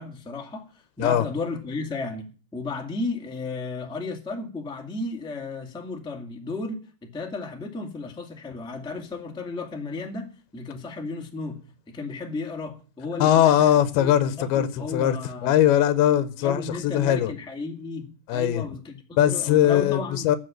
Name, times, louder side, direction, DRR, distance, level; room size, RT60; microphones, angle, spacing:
voice 1, 0.0-11.6 11.9-15.6 16.4-19.0 19.3-20.3, left 3 dB, 5° left, 0.9 m, -34 dB
voice 2, 13.2-15.2 15.4-17.3 18.3-18.6 19.2-20.4, left 11 dB, 85° left, 2.7 m, -20 dB
12.5 x 7.3 x 8.9 m
omnidirectional pair, 4.4 m